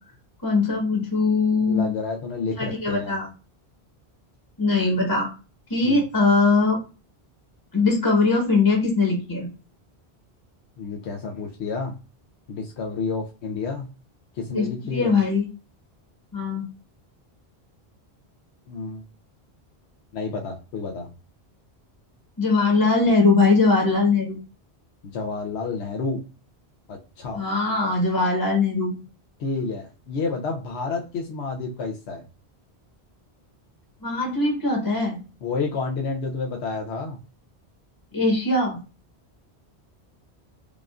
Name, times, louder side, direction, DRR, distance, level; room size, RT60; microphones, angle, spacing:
voice 1, 0.4-1.9 2.6-3.3 4.6-5.3 5.7-6.8 7.7-9.5 14.5-15.4 16.3-16.6 22.4-24.4 27.3-28.9 34.0-35.2 38.1-38.8, left 3 dB, 20° left, 0 dB, 1.1 m, -21 dB
voice 2, 1.6-3.2 5.8-6.0 10.8-12.0 12.5-13.9 14.3-15.2 18.7-19.0 20.1-21.1 25.1-26.2 26.9-27.4 29.4-32.2 35.4-37.2, left 4 dB, 85° left, 1 dB, 0.9 m, -30 dB
5.0 x 2.5 x 2.3 m, 0.33 s
omnidirectional pair, 1.1 m